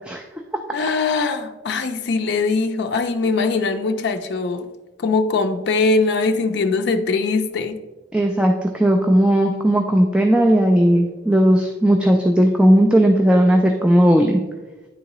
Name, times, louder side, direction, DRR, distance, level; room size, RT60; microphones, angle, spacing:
voice 1, 0.7-4.7 5.0-7.8, left 3 dB, 60° left, 6 dB, 0.4 m, -21 dB
voice 2, 8.1-14.4, equal, 5° right, 2 dB, 0.3 m, -16 dB
9.5 x 3.7 x 3.0 m, 1.2 s
head